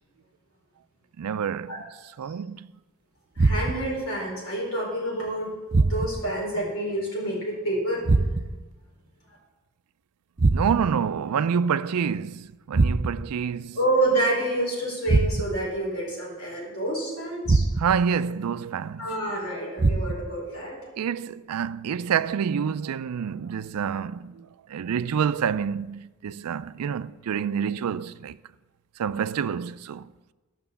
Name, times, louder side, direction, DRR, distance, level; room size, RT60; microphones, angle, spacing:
voice 1, 1.2-1.8 2.2-2.7 10.4-13.8 17.8-19.1 21.0-28.4 29.0-30.1, right 7 dB, 90° right, 0.4 m, -27 dB
voice 2, 3.4-8.0 13.7-17.6 19.0-20.8, right 1 dB, 75° left, 4.6 m, -28 dB
sound 1, 3.4-4.0 5.7-6.3 8.0-8.7 10.4-11.0 12.7-13.4 15.1-15.7 17.4-18.1 19.8-20.4, right 3 dB, 35° right, 0.5 m, -23 dB
13.0 x 6.1 x 6.9 m
head